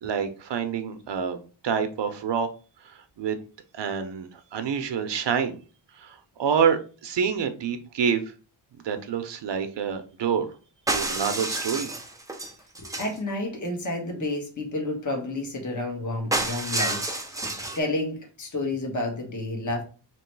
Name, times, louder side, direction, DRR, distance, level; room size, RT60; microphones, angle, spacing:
voice 1, 0.0-2.5 3.2-3.4 3.7-5.6 6.0-8.2 8.8-10.5 10.9-11.9, right 7 dB, 65° right, 8 dB, 0.7 m, -27 dB
sound 1, 10.9-13.2 16.3-17.8, right 2 dB, 5° right, 0.7 m, -29 dB
voice 2, 12.8-19.8, left 2 dB, 40° left, 1 dB, 1.4 m, -30 dB
3.1 x 3.0 x 4.5 m, 0.36 s
wide cardioid pair, 100°, 46 cm